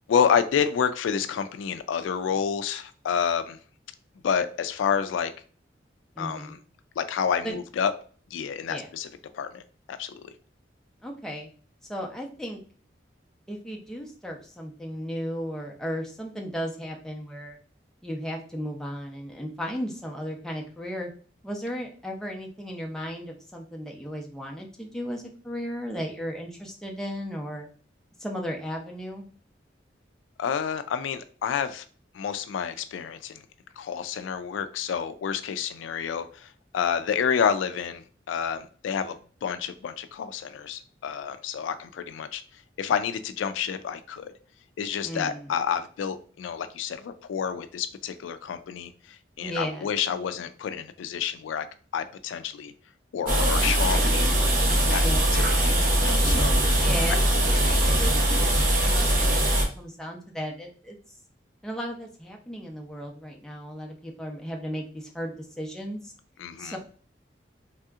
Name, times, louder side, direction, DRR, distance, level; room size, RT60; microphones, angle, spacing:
voice 1, 0.1-3.6 4.2-5.3 6.2-6.6 7.0-7.9 8.3-9.1 9.3-9.6 9.9-10.3 30.4-31.8 32.1-33.4 33.8-39.1 39.4-42.4 42.8-44.3 44.8-51.7 51.9-52.7 53.1-54.3 54.9-55.0 55.3-56.5 66.4-66.8, left 7 dB, 90° left, 11 dB, 0.3 m, -29 dB
voice 2, 6.2-6.6 7.4-7.6 8.7-8.9 11.0-11.5 11.8-12.6 13.5-17.6 18.0-21.1 21.4-27.7 28.2-29.3 45.0-45.5 49.4-49.9 55.0-55.3 56.8-61.0 61.6-66.1 66.6-66.8, equal, 5° left, 0 dB, 0.5 m, -35 dB
sound 1, 53.3-59.7, right 1 dB, 50° right, 0.7 m, -21 dB
3.3 x 2.7 x 2.3 m, 0.41 s
head